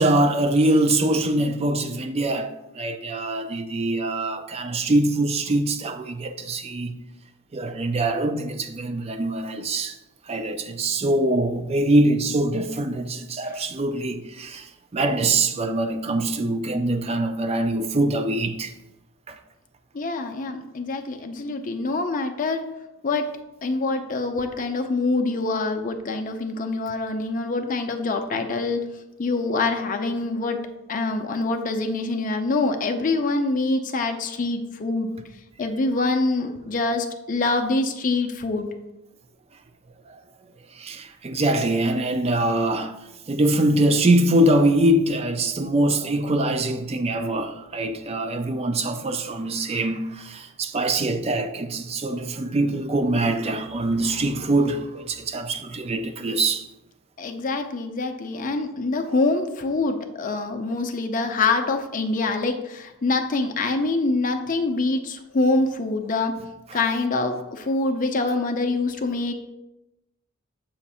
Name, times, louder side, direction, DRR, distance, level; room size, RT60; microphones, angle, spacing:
voice 1, 0.0-6.9 7.5-10.0 10.3-18.7 19.3-19.4 40.1-40.2 40.7-43.0 43.3-56.7, right 1 dB, 30° right, 0.4 m, -23 dB
voice 2, 19.9-22.7 23.0-23.3 23.6-28.8 29.2-30.6 30.9-35.1 35.6-38.7 57.2-66.4 66.7-69.3, left 3 dB, 40° left, 0.5 m, -25 dB
7.1 x 2.5 x 5.5 m
head